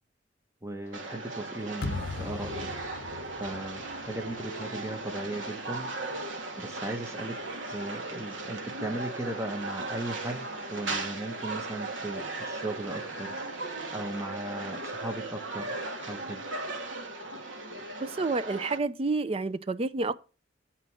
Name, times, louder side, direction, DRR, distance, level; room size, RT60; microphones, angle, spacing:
voice 1, 0.6-2.8 3.4-5.9 6.6-7.3 7.7-13.3 13.9-15.7 16.1-16.4, right 2 dB, 15° right, 1.2 m, -37 dB
sound 1, 0.8-14.2, left 1 dB, 15° left, 2.5 m, -58 dB
sound 2, 0.9-18.8, right 2 dB, 80° right, 1.4 m, -37 dB
sound 3, 1.8-4.9, left 3 dB, 55° left, 0.7 m, -39 dB
voice 2, 18.0-20.1, right 3 dB, 30° right, 0.5 m, -29 dB
9.1 x 4.3 x 6.2 m
head